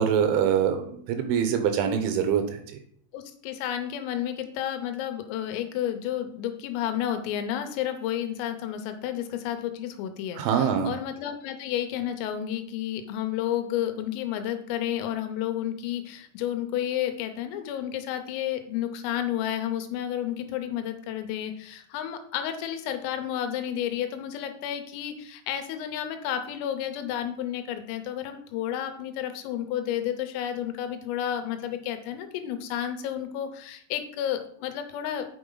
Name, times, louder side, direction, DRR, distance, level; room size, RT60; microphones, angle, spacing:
voice 1, 0.0-2.8 10.4-10.9, right 8 dB, 80° right, 7 dB, 3.2 m, -24 dB
voice 2, 3.1-35.3, left 10 dB, 90° left, 7 dB, 3.5 m, -31 dB
8.1 x 5.9 x 3.9 m, 0.63 s
omnidirectional pair, 5.7 m